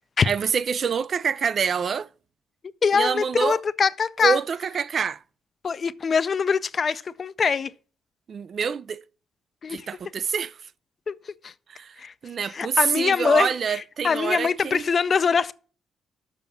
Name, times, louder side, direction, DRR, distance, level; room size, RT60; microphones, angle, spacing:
voice 1, 0.2-2.1 2.9-3.6 4.2-5.2 8.3-9.0 9.7-10.5 11.7-12.0 12.2-14.8, right 6 dB, 50° right, 0.3 m, -26 dB
voice 2, 2.8-4.4 5.6-7.7 9.6-9.9 11.1-11.2 11.4-11.5 12.0-12.1 12.5-15.5, left 5 dB, 45° left, 0.5 m, -23 dB
7.0 x 5.8 x 6.9 m
cardioid pair, 90°, 0 cm